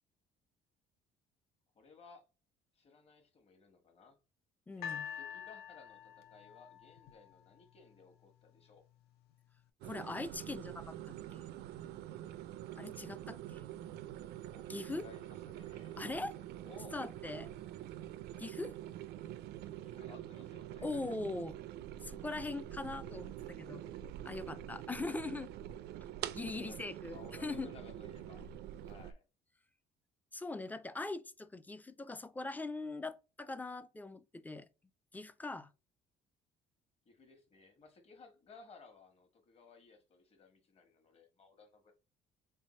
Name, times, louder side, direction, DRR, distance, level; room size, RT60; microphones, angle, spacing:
voice 1, 1.7-2.2 2.7-4.2 4.7-8.8 14.5-15.9 16.6-17.0 19.8-21.2 26.4-28.5 28.8-29.2 37.0-41.9, left 4 dB, 35° left, 1.2 m, -58 dB
voice 2, 4.7-5.1 9.8-11.0 11.3-11.4 12.8-13.6 14.7-15.1 16.0-16.3 16.9-17.5 18.4-18.8 20.8-21.5 22.0-23.8 24.3-25.5 26.3-27.7 30.3-34.7 35.1-35.7, left 3 dB, 10° left, 0.3 m, -41 dB
sound 1, 4.8-8.0 8.8-8.9, left 8 dB, 70° left, 0.6 m, -46 dB
sound 2, 9.8-29.1, right 12 dB, 75° right, 0.4 m, -46 dB
3.4 x 2.7 x 4.2 m
cardioid pair, 110°, 17 cm